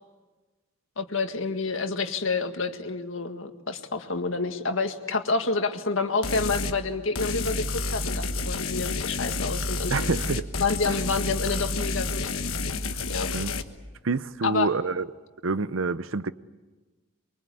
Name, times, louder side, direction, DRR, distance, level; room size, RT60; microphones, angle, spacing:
voice 1, 1.0-9.9 10.6-12.6 13.1-13.3 14.4-14.7, left 3 dB, 70° left, 1.9 m, -28 dB
sound 1, 6.2-6.8 7.2-13.6, left 3 dB, 90° left, 1.4 m, -29 dB
voice 2, 9.9-10.5 10.9-11.0 13.3-13.5 14.0-15.1 15.4-16.3, right 4 dB, 75° right, 0.8 m, -27 dB
24.0 x 23.5 x 8.5 m
head